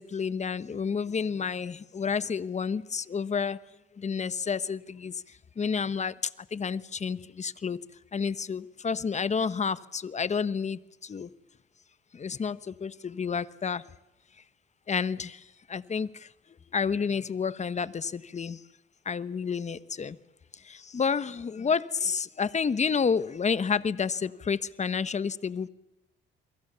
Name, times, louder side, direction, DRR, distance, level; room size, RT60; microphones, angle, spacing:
voice 1, 0.0-3.6 4.0-5.2 5.6-6.1 6.5-7.8 8.1-11.3 12.1-13.8 14.9-15.4 15.7-16.3 16.7-18.6 19.0-20.2 20.6-25.7, left 6 dB, 35° left, 1.1 m, -30 dB
29.0 x 23.0 x 6.9 m
cardioid pair, 90°, 20 cm